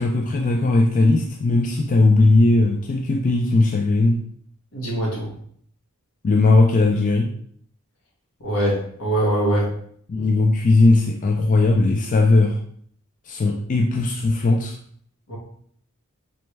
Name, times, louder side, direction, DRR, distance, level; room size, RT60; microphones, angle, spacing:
voice 1, 0.0-4.2 6.2-7.3 10.1-12.6 13.3-14.7, left 2 dB, 40° left, 2 dB, 0.4 m, -18 dB
voice 2, 4.7-5.3 8.4-9.7 15.3-15.4, right 1 dB, 80° left, -4 dB, 1.6 m, -23 dB
4.3 x 3.1 x 3.2 m, 0.62 s
head